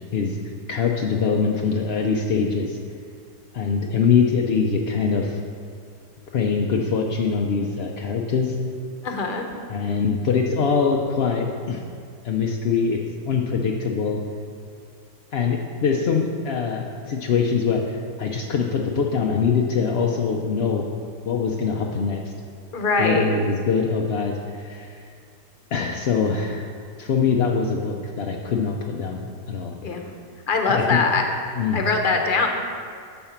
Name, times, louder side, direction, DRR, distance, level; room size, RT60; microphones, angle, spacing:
voice 1, 0.7-2.8 3.5-5.4 6.3-8.5 9.7-11.8 12.2-13.0 13.2-14.2 15.3-20.9 21.2-22.3 23.0-25.0 25.7-26.7 27.0-29.7 30.7-31.0 31.6-31.9, left 5 dB, 60° left, 0 dB, 0.6 m, -23 dB
voice 2, 9.0-9.5 22.7-23.4 29.8-30.0 30.5-31.2 31.7-32.5, left 4 dB, 40° left, 3 dB, 0.9 m, -22 dB
11.5 x 4.4 x 7.2 m, 2.2 s
omnidirectional pair, 1.8 m